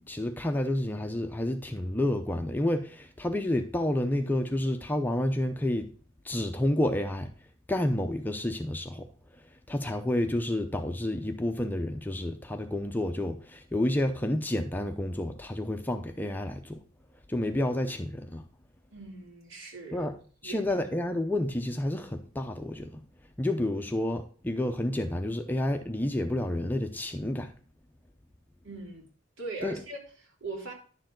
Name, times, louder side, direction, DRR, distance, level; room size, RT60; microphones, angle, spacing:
voice 1, 0.1-5.9 6.2-7.3 7.7-9.1 9.7-16.8 17.3-18.4 19.9-20.2 20.4-23.0 23.4-27.5 29.6-29.8, left 1 dB, 10° left, 0.6 m, -30 dB
voice 2, 18.9-20.1 20.4-20.6 28.6-29.1 29.4-30.7, right 3 dB, 70° right, 3.0 m, -40 dB
10.5 x 6.9 x 3.8 m
head